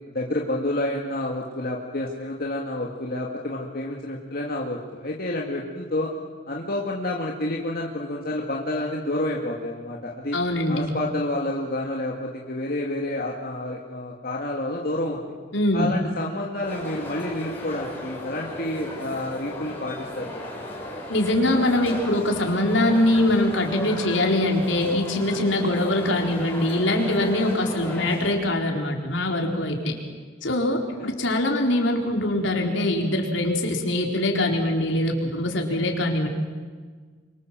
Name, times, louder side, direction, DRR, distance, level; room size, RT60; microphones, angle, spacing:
voice 1, 0.1-6.1 6.5-10.4 10.7-15.2 15.7-20.4 30.7-31.1, left 1 dB, 50° left, -2 dB, 2.4 m, -29 dB
voice 2, 10.3-10.9 15.5-15.9 21.1-30.0 30.4-36.3, left 1 dB, 75° left, 2 dB, 4.3 m, -23 dB
sound 1, 16.6-28.3, left 1 dB, 10° left, 6.4 m, -36 dB
28.0 x 25.0 x 7.7 m, 1.5 s
head